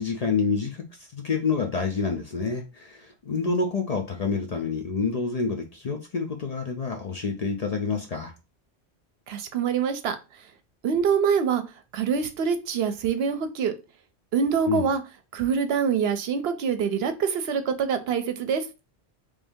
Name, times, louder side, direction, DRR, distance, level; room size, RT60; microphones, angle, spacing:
voice 1, 0.0-8.3 14.7-14.9, left 4 dB, 50° left, 0.5 m, -28 dB
voice 2, 9.3-10.2 10.8-11.6 11.9-13.7 14.3-15.0 15.3-18.7, right 6 dB, 75° right, 0.8 m, -25 dB
3.3 x 2.6 x 3.5 m
omnidirectional pair, 1.1 m